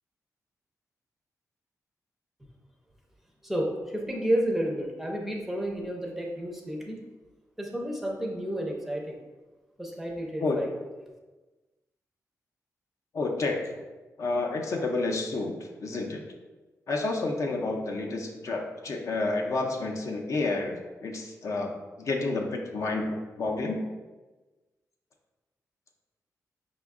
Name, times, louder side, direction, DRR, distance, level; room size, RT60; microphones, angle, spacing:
voice 1, 3.4-7.0 7.6-9.2 9.8-10.7, right 1 dB, 5° right, 0 dB, 0.5 m, -31 dB
voice 2, 13.1-13.6 14.2-15.5 15.8-16.2 16.9-20.8 21.0-23.9, left 3 dB, 55° left, 1 dB, 0.5 m, -30 dB
5.1 x 2.2 x 3.5 m, 1.2 s
wide cardioid pair, 155°, 6 cm